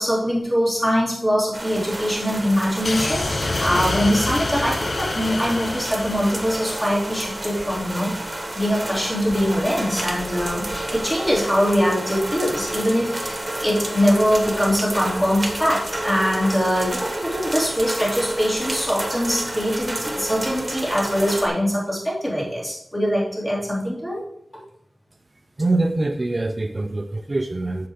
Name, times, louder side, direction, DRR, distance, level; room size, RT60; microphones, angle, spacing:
voice 1, 0.0-8.1 8.5-24.2, equal, 20° left, -6 dB, 4.1 m, -22 dB
sound 1, 1.5-21.5, right 1 dB, 20° right, 1.5 m, -30 dB
sound 2, 2.8-7.2, left 3 dB, 55° left, 0.4 m, -27 dB
voice 2, 25.6-27.9, right 2 dB, 40° right, 6 dB, 0.6 m, -24 dB
7.6 x 6.6 x 5.0 m, 0.74 s
wide cardioid pair, 65°, 0 cm